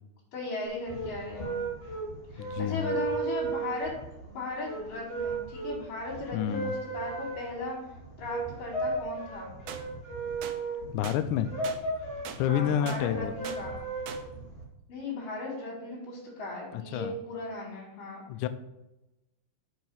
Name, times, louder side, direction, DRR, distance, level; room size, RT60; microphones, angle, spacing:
voice 1, 0.3-1.6 2.3-3.9 4.2-7.9 8.2-9.5 12.5-13.8 14.9-18.2, left 2 dB, 60° left, -9 dB, 4.4 m, -37 dB
sound 1, 0.7-14.6, right 3 dB, 20° left, 1.5 m, -35 dB
voice 2, 2.4-2.9 6.3-6.7 10.9-11.5 12.4-13.3 16.7-17.2 18.3-18.5, left 10 dB, 90° left, 9 dB, 1.8 m, -29 dB
sound 2, 9.7-9.8 10.4-10.6 11.0-11.2 11.6-11.8 12.3-12.4 12.9-13.0 13.4-13.6 14.1-14.2, right 9 dB, 85° right, 1.8 m, -40 dB
7.6 x 5.7 x 5.6 m, 0.96 s
omnidirectional pair, 4.3 m